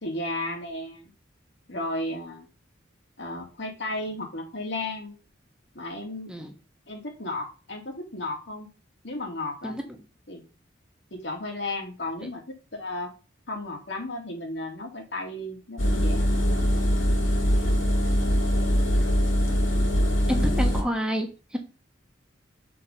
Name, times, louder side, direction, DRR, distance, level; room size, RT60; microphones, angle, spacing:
voice 1, 0.0-1.1 1.7-2.5 3.2-5.1 5.7-6.3 6.9-8.7 9.0-9.7 10.3-10.4 11.1-13.1 13.5-16.6, left 2 dB, 65° left, 1 dB, 2.3 m, -34 dB
Engine, 15.8-20.8, equal, 80° left, 2.3 m, -22 dB
voice 2, 20.3-21.6, equal, 5° right, 3 dB, 1.2 m, -29 dB
7.2 x 4.6 x 5.2 m, 0.33 s
head